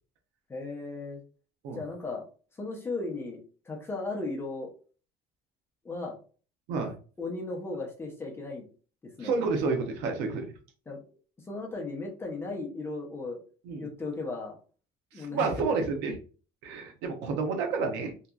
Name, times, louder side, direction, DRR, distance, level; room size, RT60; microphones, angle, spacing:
voice 1, 0.5-1.2 1.8-2.2 2.6-3.4 3.7-4.7 5.8-6.2 7.2-8.6 9.0-9.4 10.9-11.0 11.5-13.4 13.8-14.6 15.1-15.6, left 3 dB, 15° left, -1 dB, 0.5 m, -36 dB
voice 2, 9.2-10.5 13.6-13.9 15.1-16.2 16.6-18.1, right 4 dB, 80° right, 5 dB, 0.7 m, -30 dB
2.7 x 2.3 x 2.3 m, 0.38 s
cardioid pair, 165°, 18 cm